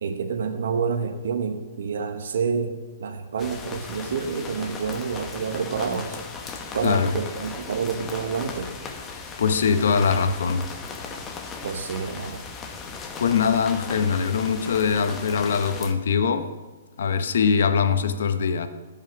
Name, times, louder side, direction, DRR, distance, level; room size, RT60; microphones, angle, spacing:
voice 1, 0.0-6.2 6.7-8.7 11.6-12.4, right 5 dB, 70° right, 1.1 m, -28 dB
sound 1, 3.4-15.9, left 4 dB, 15° left, 0.9 m, -37 dB
voice 2, 6.8-7.2 9.4-10.7 13.2-16.5 17.0-18.7, left 6 dB, 70° left, 0.9 m, -22 dB
14.5 x 5.7 x 5.9 m
hypercardioid pair, 160°, 0 cm